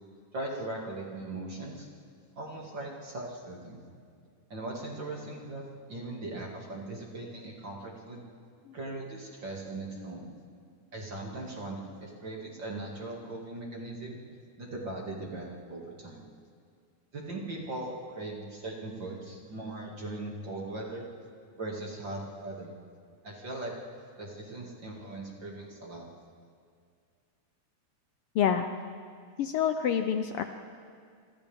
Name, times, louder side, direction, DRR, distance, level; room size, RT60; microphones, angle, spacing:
voice 1, 0.3-1.9 2.4-3.8 4.5-8.2 8.7-10.3 10.9-14.2 14.6-16.2 17.1-21.1 21.6-22.7 23.2-23.7 24.2-26.0, right 2 dB, 40° right, -2 dB, 2.7 m, -39 dB
voice 2, 28.3-28.7 29.4-30.4, left 8 dB, 80° left, 7 dB, 1.2 m, -27 dB
28.0 x 26.0 x 3.5 m, 2.2 s
omnidirectional pair, 3.4 m